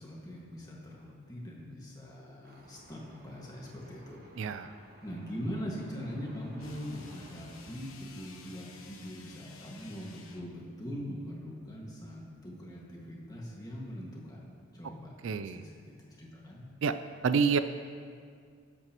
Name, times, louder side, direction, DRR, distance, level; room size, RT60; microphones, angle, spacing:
voice 1, 0.0-15.1 15.4-15.8 16.2-16.7, equal, 20° left, -3 dB, 1.8 m, -42 dB
sound 1, 2.4-7.7, right 1 dB, 45° right, 1.2 m, -56 dB
voice 2, 4.4-4.7 15.2-15.6 16.8-16.9 17.2-17.6, right 5 dB, 65° right, 11 dB, 0.4 m, -27 dB
sound 2, 6.6-10.6, left 4 dB, 75° left, 1.1 m, -52 dB
19.0 x 7.7 x 3.0 m, 2.1 s
head